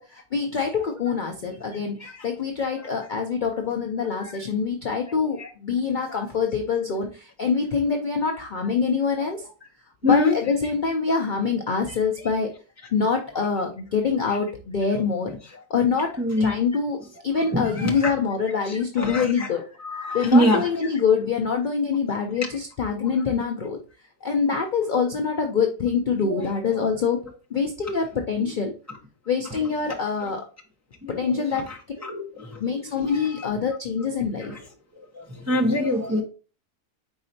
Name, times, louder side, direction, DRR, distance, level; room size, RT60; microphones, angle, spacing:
voice 1, 0.0-9.5 10.1-12.5 12.9-15.4 15.7-16.1 16.4-17.0 17.2-19.7 20.1-23.8 24.2-27.2 27.5-28.7 29.3-30.5 31.1-31.7 32.6-34.6, left 5 dB, 80° left, 0.4 m, -25 dB
voice 2, 4.0-4.4 4.9-5.5 6.1-6.2 9.2-9.3 10.0-10.4 12.3-12.4 15.5-15.6 16.2-16.6 17.5-18.0 18.5-19.5 19.8-20.9 26.3-26.8 29.5-30.0 30.2-30.3 31.0-31.8 32.0-32.6 32.9-33.4 34.4-34.6 35.0-36.2, left 1 dB, 20° right, 0.4 m, -26 dB
4.7 x 4.2 x 2.6 m
omnidirectional pair, 1.6 m